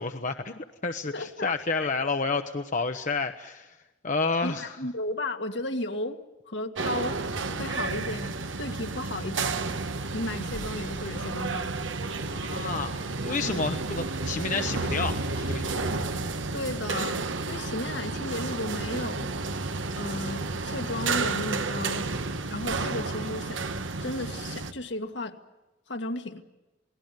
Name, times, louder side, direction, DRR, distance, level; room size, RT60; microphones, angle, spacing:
voice 1, 0.0-3.8 4.0-4.8 12.3-16.0, left 4 dB, 40° left, 6 dB, 0.9 m, -30 dB
voice 2, 1.1-1.9 4.4-6.2 6.5-7.2 7.6-9.6 10.1-11.7 13.5-13.7 16.5-19.3 19.9-22.1 22.5-23.6 24.0-25.4 25.9-26.4, left 2 dB, 70° left, 5 dB, 1.8 m, -34 dB
sound 1, 6.8-24.7, right 3 dB, 90° right, 1.3 m, -31 dB
28.5 x 19.0 x 9.3 m, 1.1 s
head